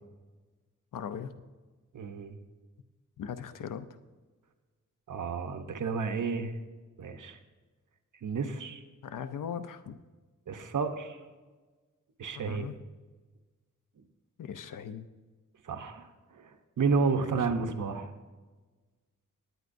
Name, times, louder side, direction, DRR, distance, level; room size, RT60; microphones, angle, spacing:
voice 1, 0.9-1.3 3.2-3.9 9.0-10.0 12.4-12.8 14.4-15.1, left 8 dB, 85° left, 10 dB, 0.7 m, -38 dB
voice 2, 1.9-2.4 5.1-6.5 7.0-7.4 8.2-8.8 10.5-11.2 12.2-12.7 15.6-18.1, right 5 dB, 75° right, 7 dB, 1.0 m, -31 dB
18.5 x 9.6 x 2.6 m, 1.3 s
wide cardioid pair, 105°, 31 cm